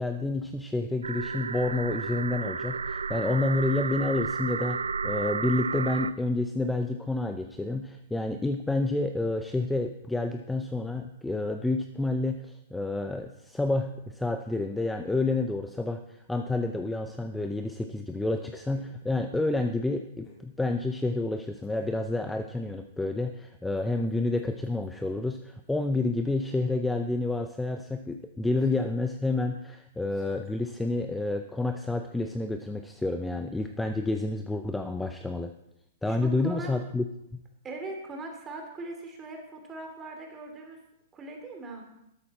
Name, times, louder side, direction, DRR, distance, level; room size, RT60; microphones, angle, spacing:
voice 1, 0.0-35.5 36.0-37.0 37.3-37.4, left 2 dB, 5° left, 7 dB, 0.6 m, -29 dB
sound 1, 1.0-6.1, right 5 dB, 85° right, 0.4 m, -32 dB
sound 2, 18.7-19.0 20.2-20.6 21.6-22.1 23.8-25.0 25.3-25.4 25.6-27.0 27.2-27.5 28.1-28.2 28.6-28.9 29.2-29.3 30.1-30.5, left 3 dB, 25° left, 3.6 m, -57 dB
voice 2, 36.0-36.7 37.6-40.8 41.1-41.8, right 2 dB, 20° right, 2 dB, 2.8 m, -40 dB
12.5 x 8.5 x 4.3 m, 0.83 s
hypercardioid pair, 120°, 0 cm